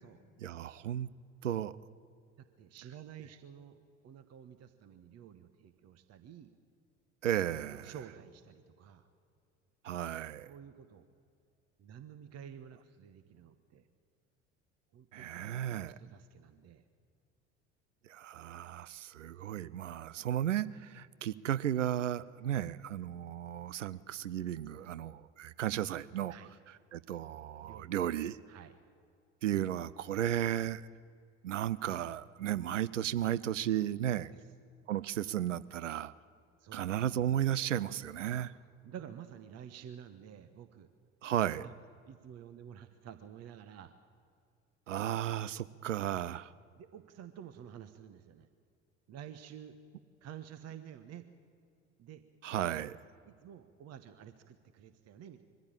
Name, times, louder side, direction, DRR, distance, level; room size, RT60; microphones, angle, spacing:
voice 1, 0.4-1.1 1.4-1.8 7.2-7.9 9.8-10.5 15.1-16.0 18.0-26.3 26.9-28.4 29.4-30.9 31.4-34.3 34.9-36.1 36.7-38.5 41.2-41.7 44.9-46.5 52.4-53.0, right 11 dB, 85° right, 0.5 m, -34 dB
voice 2, 2.4-6.5 7.7-9.1 10.4-11.0 11.8-13.9 14.9-16.8 24.7-24.9 26.3-26.5 27.6-27.9 28.5-28.8 34.3-34.5 36.6-36.9 38.4-38.5 38.8-40.9 41.6-41.7 42.1-43.9 46.7-48.5 49.1-49.8 50.2-51.3 52.0-52.2 52.8-52.9 53.2-55.4, right 9 dB, 45° right, 1.1 m, -51 dB
22.5 x 15.0 x 8.8 m
figure-of-eight pair, 60°, 36 cm